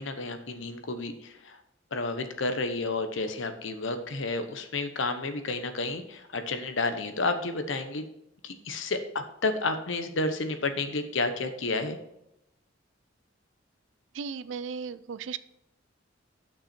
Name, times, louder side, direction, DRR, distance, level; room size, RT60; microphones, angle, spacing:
voice 1, 0.0-1.6 1.9-8.1 8.4-12.0, left 3 dB, 75° left, 8 dB, 1.0 m, -31 dB
voice 2, 14.1-15.4, right 6 dB, 70° right, 16 dB, 0.4 m, -36 dB
10.5 x 6.0 x 4.4 m, 0.83 s
head